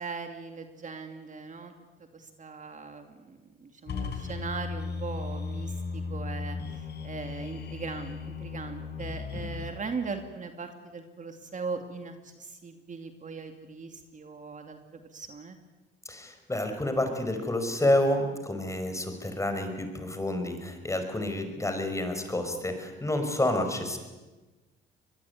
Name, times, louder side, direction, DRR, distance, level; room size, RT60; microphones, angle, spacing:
voice 1, 0.0-1.7 2.1-15.6, right 4 dB, 40° right, 6 dB, 2.6 m, -39 dB
sound 1, 3.9-9.7, left 4 dB, 60° left, 4.4 m, -36 dB
voice 2, 16.1-24.0, left 1 dB, 15° left, 6 dB, 5.3 m, -29 dB
23.0 x 21.5 x 9.7 m, 1.2 s
cardioid pair, 90°, 20 cm